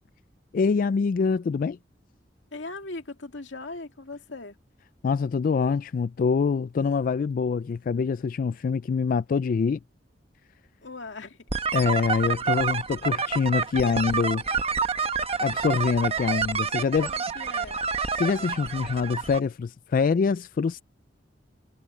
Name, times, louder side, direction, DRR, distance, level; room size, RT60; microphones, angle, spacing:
voice 1, 0.5-1.8 5.0-9.8 11.7-14.4 15.4-17.1 18.2-20.8, left 5 dB, 50° left, 0.3 m, -25 dB
voice 2, 2.5-4.6 10.8-11.4 16.7-17.8, left 3 dB, 85° left, 2.2 m, -39 dB
sound 1, 11.5-19.4, right 5 dB, 35° right, 1.2 m, -28 dB
head